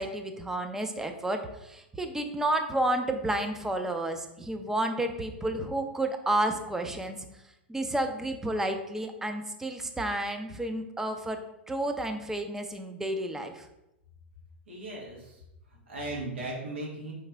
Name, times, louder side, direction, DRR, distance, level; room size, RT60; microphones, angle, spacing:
voice 1, 0.0-7.2 7.7-11.4 11.7-13.7, right 1 dB, 5° right, 6 dB, 0.5 m, -31 dB
voice 2, 14.7-15.4 15.7-17.1, right 2 dB, 90° right, -4 dB, 1.7 m, -37 dB
4.7 x 3.2 x 3.4 m, 0.88 s
hypercardioid pair, 110°, 6 cm